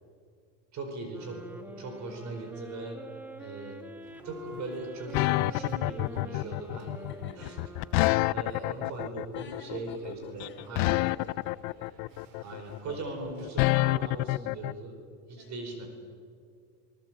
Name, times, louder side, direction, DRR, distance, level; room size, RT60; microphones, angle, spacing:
voice 1, 0.7-3.0 3.4-3.7 4.2-7.1 7.4-7.5 8.3-11.1 12.4-15.0 15.3-15.9, right 3 dB, 40° right, 4 dB, 5.0 m, -39 dB
sound 1, 1.1-8.8, equal, 5° right, 1.5 m, -46 dB
voice 2, 3.4-3.8 6.9-7.9 8.4-8.9 9.3-12.3 15.4-15.7, left 4 dB, 25° left, -1 dB, 6.8 m, -55 dB
sound 2, 4.0-14.6, right 3 dB, 90° right, 4.4 m, -59 dB
sound 3, 5.1-14.7, left 21 dB, 55° left, 0.6 m, -28 dB
28.0 x 19.5 x 7.8 m, 2.3 s
cardioid pair, 145°, 42 cm